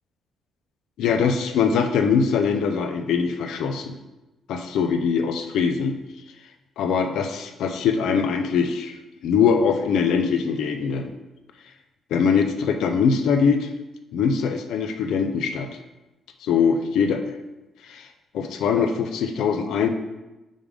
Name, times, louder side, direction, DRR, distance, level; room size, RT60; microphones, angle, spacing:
voice 1, 1.0-4.0 4.5-5.9 6.8-8.9 9.2-11.1 12.1-13.7 14.1-15.7 16.4-17.2 17.9-18.1 18.3-19.9, left 6 dB, 80° left, 6 dB, 0.6 m, -22 dB
5.3 x 3.7 x 4.9 m, 1.0 s
cardioid pair, 90°, 0 cm